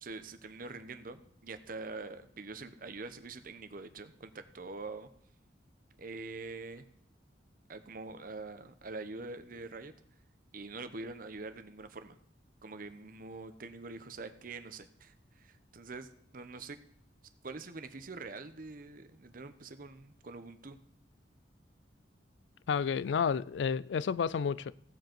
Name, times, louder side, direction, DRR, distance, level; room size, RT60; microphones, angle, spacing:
voice 1, 0.0-5.1 6.0-6.9 7.7-9.9 10.5-12.2 12.6-16.8 17.4-20.8, right 3 dB, 50° right, 0.9 m, -45 dB
voice 2, 22.7-24.7, left 6 dB, 85° left, 0.4 m, -30 dB
16.5 x 7.8 x 4.5 m
head